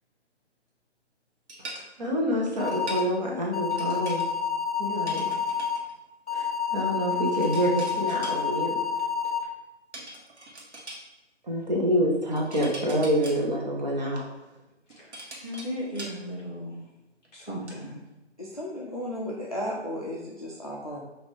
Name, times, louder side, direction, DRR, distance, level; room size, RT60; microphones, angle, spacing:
sound 1, 1.5-1.9 2.6-3.1 3.7-4.3 5.1-5.9 7.4-8.4 9.9-11.0 12.3-13.4 14.7-16.2 16.7-16.8 17.2-17.8, right 1 dB, 70° right, 1.2 m, -42 dB
voice 1, 2.0-4.2 4.8-5.3 6.3-8.8 11.4-14.2, equal, 35° right, -3 dB, 0.8 m, -27 dB
sound 2, 2.6-3.0 3.5-5.8 6.3-9.4, left 6 dB, 70° left, 0.7 m, -29 dB
voice 2, 15.4-16.8 17.3-17.9, equal, 15° left, -9 dB, 1.2 m, -36 dB
voice 3, 18.4-21.0, equal, 35° left, -5 dB, 0.4 m, -34 dB
5.9 x 2.5 x 3.1 m, 1.0 s
figure-of-eight pair, 155°, 35 cm